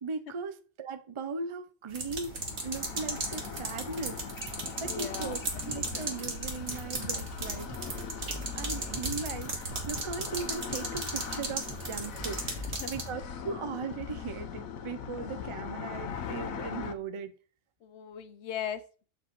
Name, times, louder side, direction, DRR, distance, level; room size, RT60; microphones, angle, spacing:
voice 1, 0.0-2.4 2.6-4.2 4.8-8.0 8.5-17.4, right 4 dB, 55° right, 0.3 m, -38 dB
sound 1, 1.9-13.1, right 3 dB, 70° right, 2.1 m, -37 dB
sound 2, 2.0-16.9, left 7 dB, 85° left, 1.2 m, -41 dB
voice 2, 4.9-5.4 12.4-12.9 17.8-19.0, left 9 dB, 65° left, 0.8 m, -39 dB
sound 3, 5.4-13.2, left 1 dB, 15° right, 1.9 m, -45 dB
7.5 x 5.2 x 4.2 m
omnidirectional pair, 1.4 m